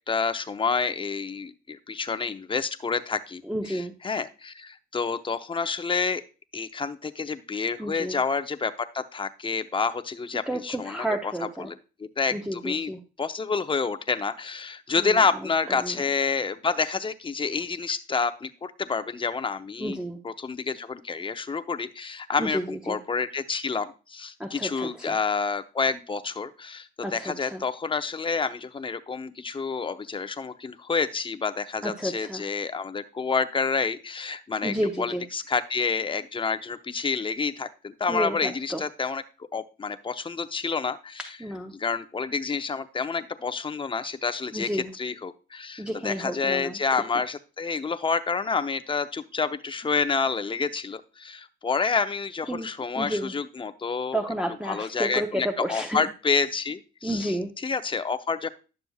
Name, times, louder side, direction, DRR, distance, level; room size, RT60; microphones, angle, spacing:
voice 1, 0.1-3.4 3.7-6.2 6.5-11.1 11.4-11.7 12.0-12.9 13.2-20.0 20.2-39.2 39.5-41.3 41.7-54.2 54.6-57.4 57.6-58.5, left 5 dB, 25° left, 9 dB, 0.7 m, -28 dB
voice 2, 3.4-3.9 7.8-8.2 10.5-11.7 12.3-13.0 15.0-15.3 15.8-16.0 19.8-20.2 22.4-23.0 24.4-25.2 27.0-27.6 31.8-32.4 34.6-35.2 38.1-38.8 41.4-41.7 44.5-44.9 45.8-46.8 52.5-52.7 52.9-53.3 54.1-56.1 57.0-57.5, equal, 5° right, 4 dB, 0.8 m, -31 dB
10.5 x 6.8 x 2.3 m, 0.33 s
cardioid pair, 90°, 20 cm